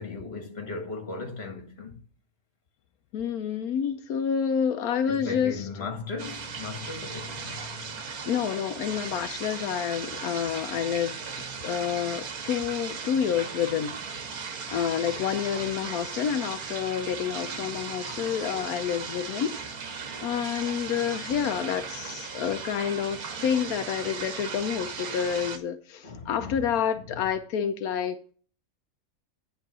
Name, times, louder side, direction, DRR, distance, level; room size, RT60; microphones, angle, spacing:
voice 1, 0.0-2.0 5.2-7.9 21.3-21.4 26.0-26.7, left 3 dB, 45° left, 1.9 m, -37 dB
voice 2, 3.1-5.7 8.2-11.2 11.6-13.9 14.2-14.3 14.7-19.8 20.2-28.3, left 8 dB, 85° left, 1.2 m, -29 dB
sound 1, 6.2-25.6, right 5 dB, 80° right, 1.7 m, -37 dB
10.5 x 3.9 x 7.3 m
omnidirectional pair, 1.5 m